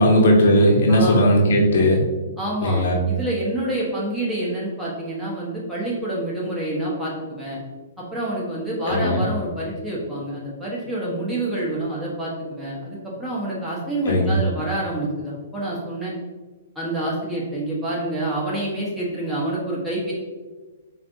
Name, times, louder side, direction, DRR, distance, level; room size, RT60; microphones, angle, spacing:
voice 1, 0.0-2.1 2.6-3.0 8.8-9.2 14.0-14.4, equal, 70° left, 0 dB, 0.8 m, -17 dB
voice 2, 0.9-1.2 2.4-2.8 3.1-7.6 8.0-16.1 16.7-20.1, right 1 dB, 5° right, -7 dB, 1.3 m, -27 dB
5.6 x 2.4 x 2.7 m, 1.3 s
hypercardioid pair, 130°, 0 cm